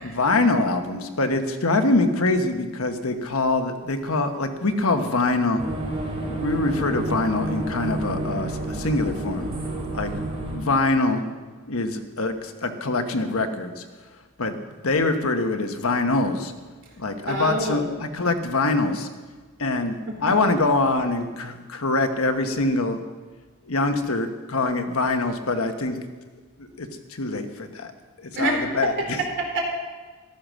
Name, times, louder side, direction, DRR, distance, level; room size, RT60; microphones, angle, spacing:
voice 1, 0.0-5.6 6.2-9.5 9.9-10.1 10.5-11.2 11.7-13.8 14.4-14.5 14.8-16.5 17.0-19.1 19.6-23.0 23.7-26.0 26.6-27.9 28.2-29.2, left 2 dB, 70° left, 7 dB, 1.2 m, -24 dB
sound 1, 5.6-10.6, right 1 dB, 30° right, 3.2 m, -30 dB
voice 2, 17.3-17.9 20.1-20.3 28.3-29.6, right 1 dB, 55° right, 1 dB, 3.6 m, -27 dB
14.5 x 12.0 x 6.3 m, 1.3 s
head